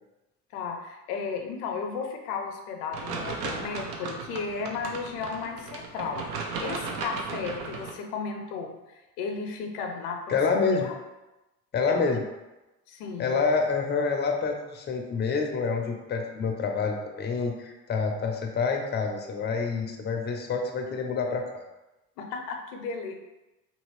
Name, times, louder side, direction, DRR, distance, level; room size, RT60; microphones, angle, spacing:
voice 1, 0.5-11.0 11.9-12.0 12.9-13.3 22.2-23.1, left 5 dB, 70° left, 3 dB, 0.7 m, -34 dB
sound 1, 2.9-7.9, right 4 dB, 70° right, 0.7 m, -36 dB
voice 2, 10.3-10.9 11.7-12.2 13.2-21.5, left 4 dB, 25° left, 3 dB, 0.5 m, -27 dB
2.8 x 2.7 x 3.1 m, 1.0 s
hypercardioid pair, 60°, 46 cm